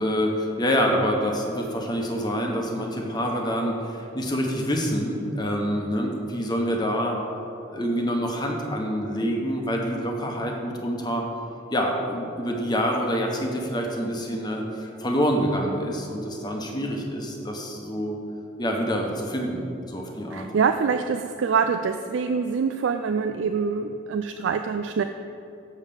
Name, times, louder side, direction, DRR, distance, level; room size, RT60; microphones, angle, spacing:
voice 1, 0.0-7.2 7.7-11.2 11.7-18.2 18.6-20.5, equal, 20° left, 1 dB, 1.0 m, -26 dB
voice 2, 20.3-25.0, right 6 dB, 80° right, 7 dB, 0.3 m, -25 dB
7.2 x 5.5 x 6.9 m, 2.8 s
head